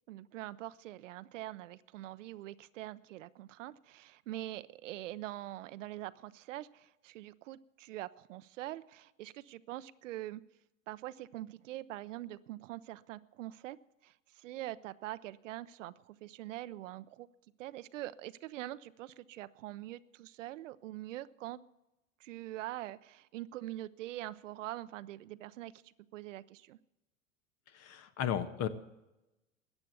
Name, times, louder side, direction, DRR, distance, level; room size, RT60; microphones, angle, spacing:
voice 1, 0.1-10.4 10.9-13.8 14.0-17.3 17.6-21.6 22.2-26.8, right 15 dB, 70° right, 16 dB, 0.6 m, -44 dB
voice 2, 27.7-28.7, left 9 dB, 40° left, 12 dB, 1.2 m, -34 dB
14.0 x 9.1 x 8.1 m, 0.96 s
hypercardioid pair, 95°, 39 cm